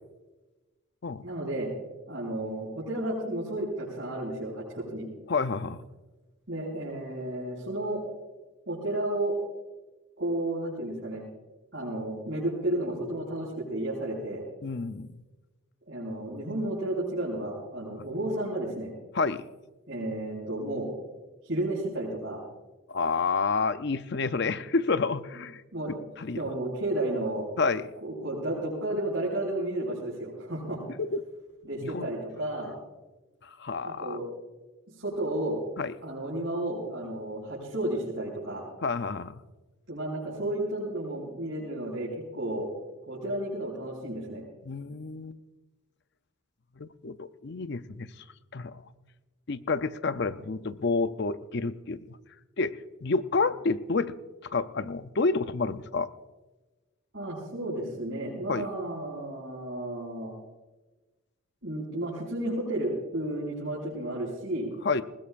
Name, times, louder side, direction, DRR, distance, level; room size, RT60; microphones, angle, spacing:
voice 1, 1.2-1.7 2.1-5.1 6.5-8.0 8.7-9.3 10.2-11.2 11.7-14.4 15.9-18.9 19.9-20.9 21.4-22.4 25.7-25.9 26.3-27.5 28.0-30.8 31.6-32.8 33.8-34.3 34.9-35.6 36.0-38.7 39.9-42.7 43.1-44.4 50.2-50.3 57.1-60.3 61.6-64.7, right 1 dB, 60° right, -8 dB, 5.9 m, -32 dB
voice 2, 5.3-5.8 14.6-15.2 19.1-19.5 22.9-25.6 26.2-26.5 27.6-27.9 31.0-31.2 31.8-32.1 33.4-34.2 35.8-35.9 38.8-39.4 44.7-45.4 46.8-48.1 48.5-48.8 49.5-52.2 52.6-54.1 54.4-56.1 58.5-58.7 64.8-65.0, left 4 dB, 55° left, 12 dB, 0.6 m, -29 dB
20.5 x 20.5 x 2.5 m, 1.2 s
head